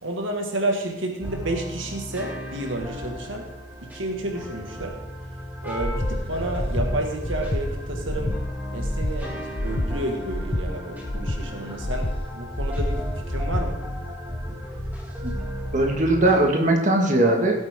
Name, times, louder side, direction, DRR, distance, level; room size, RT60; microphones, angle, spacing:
voice 1, 0.0-3.5 3.8-5.0 5.6-8.4 8.7-12.1 12.3-13.8, right 1 dB, 80° right, 2 dB, 1.8 m, -30 dB
sound 1, 1.2-16.4, equal, 10° right, 2.5 m, -34 dB
Breathing, 5.8-6.2 6.5-6.9 7.3-7.6 8.0-8.4 8.8-9.1 9.5-9.9 10.3-10.6 11.0-11.4 11.8-12.2 12.5-12.9 13.3-13.7, left 1 dB, 30° left, 0.8 m, -27 dB
voice 2, 15.7-17.7, right 1 dB, 40° right, 2 dB, 1.7 m, -20 dB
17.0 x 8.3 x 3.7 m, 0.99 s
head